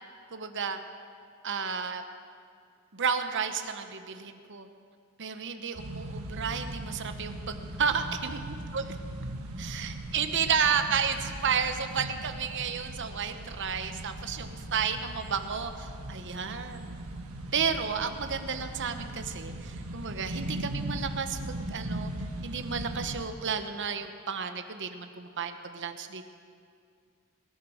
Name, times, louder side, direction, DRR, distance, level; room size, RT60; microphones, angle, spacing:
voice 1, 0.3-0.8 1.4-2.0 2.9-4.7 5.2-9.0 9.6-16.9 17.5-22.1 22.4-26.2, right 6 dB, 55° right, 8 dB, 1.0 m, -32 dB
sound 1, 5.8-23.3, right 1 dB, 80° right, 1.5 m, -39 dB
20.0 x 10.0 x 6.3 m, 2.3 s
head